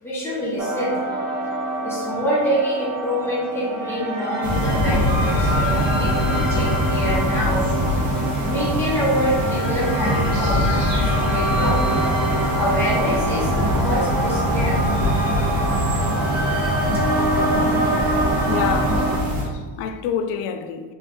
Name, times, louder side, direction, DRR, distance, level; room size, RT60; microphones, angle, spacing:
voice 1, 0.0-0.9 1.8-8.0 8.4-11.8 12.6-14.8 16.9-17.0, equal, 5° left, 0.9 m, -26 dB
sound 1, 0.6-19.2, right 1 dB, 30° right, 1.1 m, -25 dB
sound 2, 4.4-19.4, left 1 dB, 90° right, 1.4 m, -23 dB
voice 2, 18.5-19.1 19.5-20.9, left 8 dB, 80° left, 0.5 m, -27 dB
3.5 x 3.0 x 3.5 m
cardioid pair, 175°, 50 cm